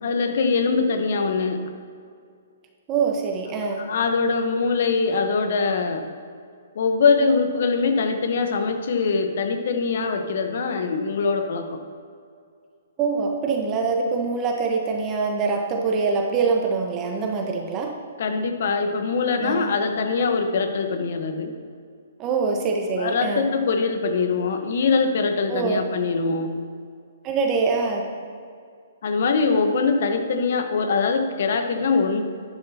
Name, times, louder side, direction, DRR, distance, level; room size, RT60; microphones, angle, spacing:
voice 1, 0.0-1.6 3.8-6.0 6.7-11.8 18.2-21.5 23.0-26.5 29.0-32.2, left 4 dB, 60° left, 6 dB, 1.2 m, -23 dB
voice 2, 2.9-3.8 13.0-17.9 19.4-19.7 22.2-23.4 25.5-25.8 27.2-28.1, right 4 dB, 25° right, 1 dB, 1.2 m, -24 dB
11.5 x 10.0 x 2.9 m, 2.2 s
hypercardioid pair, 140°, 0 cm